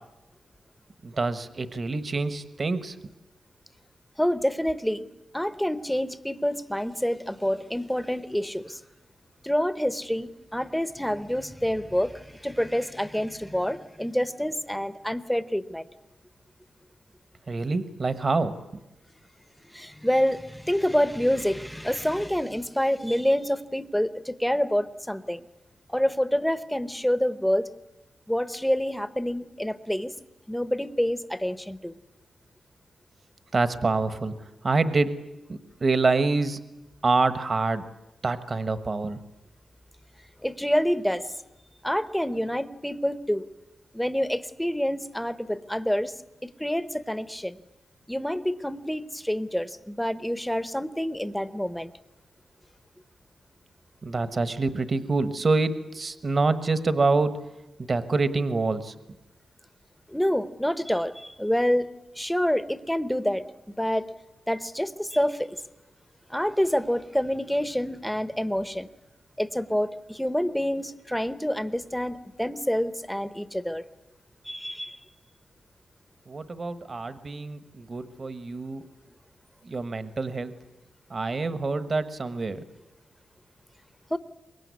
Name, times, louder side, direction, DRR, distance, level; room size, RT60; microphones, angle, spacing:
voice 1, 1.0-3.0 17.5-18.5 33.5-34.3 34.6-35.2 35.5-36.6 37.0-37.8 38.2-39.2 54.0-57.4 57.8-58.9 76.3-78.8 79.6-80.5 81.1-82.6, right 3 dB, 35° right, 13 dB, 1.2 m, -26 dB
voice 2, 4.2-5.1 5.3-8.8 9.4-15.9 19.7-25.4 25.9-27.7 28.3-30.1 30.5-31.9 40.4-41.3 41.8-43.5 43.9-46.1 46.4-47.6 48.1-51.9 60.1-61.9 62.2-63.4 63.8-64.1 64.5-65.6 66.3-68.9 69.4-73.8 74.4-75.0 84.1-84.2, equal, 5° left, 14 dB, 0.9 m, -27 dB
24.0 x 22.0 x 9.5 m, 1.0 s
wide cardioid pair, 145°, 0 cm